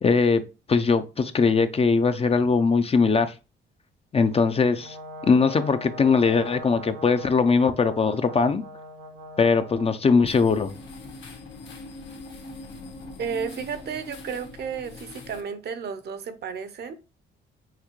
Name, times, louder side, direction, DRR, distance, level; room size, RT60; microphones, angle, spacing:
voice 1, 0.0-0.4 0.7-3.3 4.1-5.0 5.3-8.6 9.4-10.7, left 4 dB, 30° left, 0.5 m, -21 dB
Brass instrument, 4.8-10.0, equal, 85° right, 2.0 m, -41 dB
sound 1, 10.3-15.4, left 2 dB, 70° left, 1.4 m, -42 dB
voice 2, 13.2-16.9, right 6 dB, 55° right, 0.7 m, -33 dB
5.8 x 2.7 x 3.0 m
cardioid pair, 90°, 20 cm